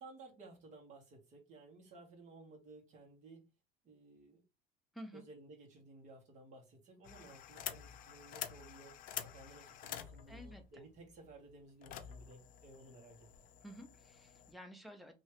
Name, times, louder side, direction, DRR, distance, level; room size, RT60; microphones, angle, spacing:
voice 1, 0.0-3.4 3.8-4.4 5.1-13.3, right 2 dB, 45° right, -1 dB, 1.5 m, -57 dB
sound 1, 7.0-14.5, left 10 dB, 50° left, 0.5 m, -48 dB
voice 2, 10.3-10.6 13.6-15.1, equal, ahead, 4 dB, 0.6 m, -51 dB
3.0 x 2.8 x 3.1 m, 0.27 s
cardioid pair, 145°, 18 cm